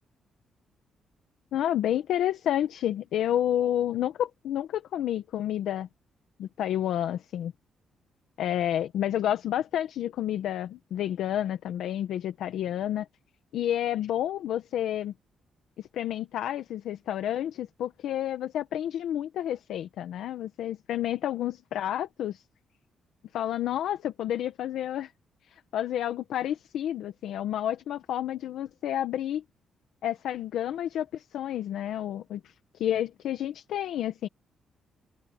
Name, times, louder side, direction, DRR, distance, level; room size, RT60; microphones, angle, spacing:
voice 1, 1.5-5.9 6.4-7.5 8.4-13.1 13.5-15.1 15.8-22.4 23.3-25.1 25.5-29.4 30.0-34.3, left 11 dB, 75° left, 1.1 m, -30 dB
cardioid pair, 170°, 0 cm